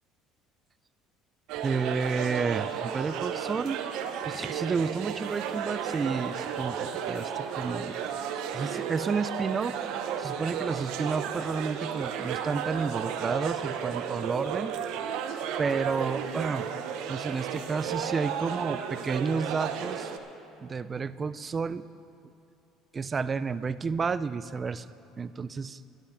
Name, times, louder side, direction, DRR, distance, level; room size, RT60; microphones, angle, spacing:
sound 1, 1.5-20.2, right 8 dB, 75° right, 0.9 m, -33 dB
voice 1, 1.6-3.8 4.2-8.3 8.5-9.8 10.2-14.7 15.6-16.7 17.1-20.1 20.6-21.9 22.9-24.9 25.2-25.8, right 5 dB, 25° right, 15 dB, 0.4 m, -31 dB
12.0 x 11.0 x 5.6 m, 2.7 s
cardioid pair, 115°, 0 cm